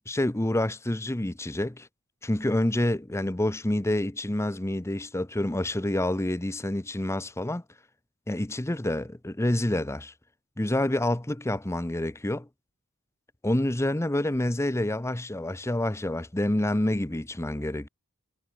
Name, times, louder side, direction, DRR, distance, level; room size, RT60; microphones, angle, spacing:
voice 1, 0.1-1.9 2.2-7.6 8.3-10.1 10.6-12.5 13.4-17.9, left 1 dB, 15° left, 0.8 m, -28 dB
head